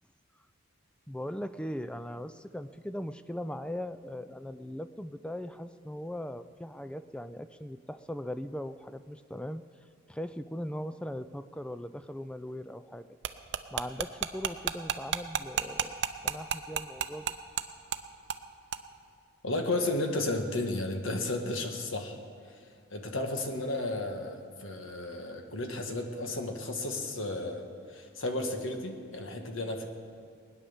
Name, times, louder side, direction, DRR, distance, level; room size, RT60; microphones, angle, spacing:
voice 1, 1.1-9.6 10.1-13.1 13.7-15.9 16.2-17.4, equal, 5° left, 12 dB, 0.4 m, -39 dB
sound 1, 13.2-17.6 17.9-18.0 18.3-18.4 18.7-18.8, right 7 dB, 55° right, 0.6 m, -31 dB
voice 2, 19.4-22.2 22.5-27.6 27.9-29.9, left 2 dB, 70° left, 4 dB, 1.6 m, -33 dB
19.5 x 10.0 x 7.2 m, 2.3 s
head